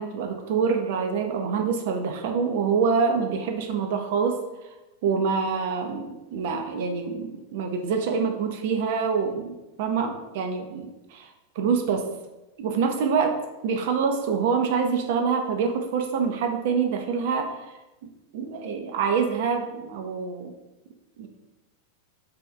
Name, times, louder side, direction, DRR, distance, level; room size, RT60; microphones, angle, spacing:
voice 1, 0.0-4.8 5.0-12.1 12.6-20.5 21.2-21.3, right 5 dB, 50° right, 5 dB, 0.6 m, -26 dB
3.5 x 3.4 x 4.4 m, 1.0 s
figure-of-eight pair, 90°, 0 cm